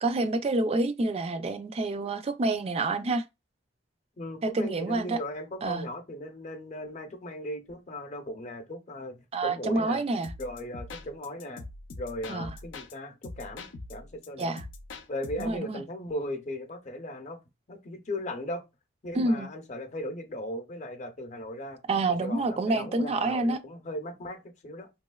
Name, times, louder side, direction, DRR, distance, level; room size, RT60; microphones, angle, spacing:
voice 1, 0.0-3.2 4.4-5.2 5.6-5.9 9.3-10.3 12.3-12.5 14.4-14.7 15.4-15.8 19.1-19.5 21.9-23.6, right 2 dB, 35° right, 0.3 m, -28 dB
voice 2, 4.2-10.0 10.4-11.6 12.0-14.6 15.1-17.4 17.7-18.6 19.0-21.8 22.1-24.9, left 1 dB, 40° left, 0.6 m, -37 dB
sound 1, 10.2-12.9 13.2-15.6, left 3 dB, 80° left, 0.5 m, -43 dB
3.0 x 2.7 x 2.3 m
head